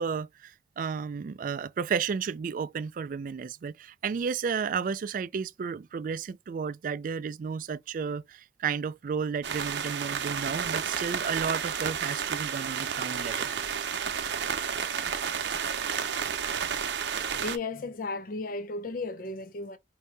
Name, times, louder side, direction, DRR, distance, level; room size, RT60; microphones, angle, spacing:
voice 1, 0.0-13.5, right 6 dB, 50° right, 0.3 m, -32 dB
sound 1, 9.4-17.6, right 7 dB, 85° right, 0.7 m, -31 dB
voice 2, 17.3-19.8, left 3 dB, 50° left, 0.4 m, -34 dB
4.7 x 2.7 x 3.2 m
head